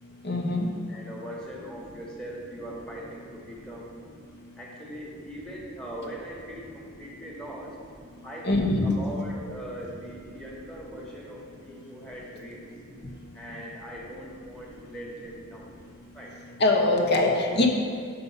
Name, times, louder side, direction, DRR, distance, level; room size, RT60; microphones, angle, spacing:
voice 1, 0.2-0.7 8.4-8.9 16.6-17.7, left 2 dB, 55° left, 1 dB, 1.0 m, -22 dB
voice 2, 0.9-3.9 4.6-7.8 8.2-12.6 13.3-15.7 16.1-16.3, right 1 dB, 5° left, -3 dB, 1.3 m, -41 dB
6.8 x 5.5 x 5.6 m, 2.3 s
head